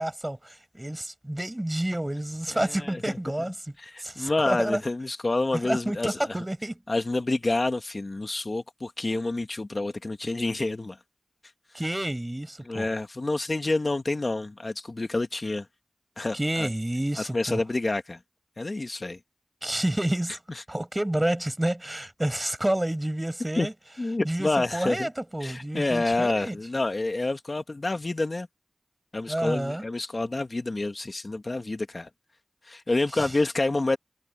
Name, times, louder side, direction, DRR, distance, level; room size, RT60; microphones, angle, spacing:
voice 1, 0.0-3.7 4.0-4.8 5.6-6.8 11.7-12.9 16.3-17.6 19.6-20.4 20.7-23.7 24.2-26.6 29.3-29.8 33.1-33.3, right 1 dB, 20° right, 7.7 m, -29 dB
voice 2, 2.5-3.2 3.8-6.2 6.9-11.0 12.6-15.7 16.2-16.7 17.2-18.2 18.6-19.2 23.6-23.7 24.0-25.1 25.4-28.5 29.1-32.1 32.6-34.0, left 2 dB, 50° left, 1.4 m, -28 dB
wide cardioid pair, 55°, 0 cm